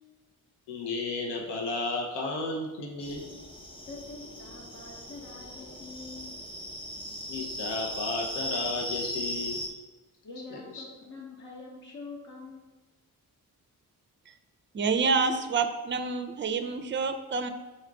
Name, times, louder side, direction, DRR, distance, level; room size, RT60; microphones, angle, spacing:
voice 1, 0.7-3.3 7.3-9.6 10.5-10.8, left 3 dB, 90° left, 0 dB, 0.7 m, -33 dB
sound 1, 3.0-9.7, equal, 15° left, 0.7 m, -38 dB
voice 2, 3.9-6.4 10.2-12.7, left 3 dB, 45° left, -3 dB, 0.8 m, -45 dB
voice 3, 14.7-17.5, right 4 dB, 30° right, 8 dB, 0.4 m, -28 dB
4.3 x 2.4 x 4.6 m, 1.2 s
cardioid pair, 60°, 39 cm